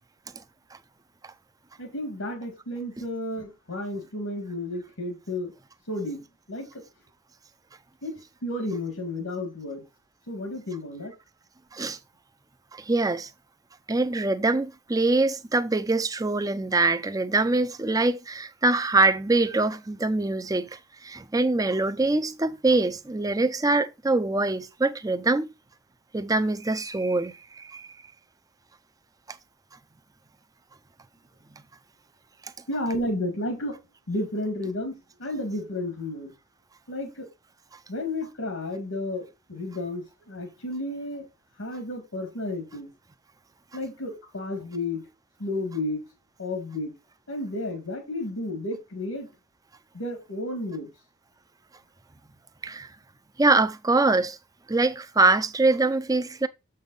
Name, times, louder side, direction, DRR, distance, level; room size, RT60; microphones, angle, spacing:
voice 1, 1.8-5.5 5.9-6.2 6.5-6.8 8.0-9.8 10.3-11.1 32.7-33.8 34.1-36.3 36.9-37.3 37.9-41.3 41.6-42.9 43.7-45.1 45.4-46.0 46.4-46.9 47.3-49.3 49.9-50.9, left 1 dB, 80° left, 1.8 m, -32 dB
voice 2, 12.7-13.3 13.9-25.5 26.1-27.9 52.6-52.9 53.4-54.4 54.7-56.5, right 2 dB, 15° right, 0.5 m, -24 dB
7.1 x 5.4 x 3.9 m
head